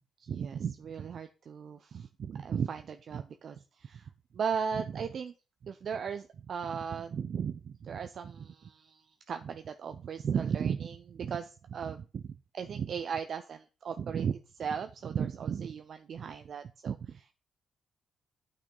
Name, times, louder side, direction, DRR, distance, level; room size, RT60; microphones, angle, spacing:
voice 1, 0.2-5.3 5.6-12.2 12.5-17.3, right 7 dB, 60° right, 8 dB, 0.7 m, -36 dB
8.9 x 6.2 x 5.4 m, 0.33 s
supercardioid pair, 60°, 0 cm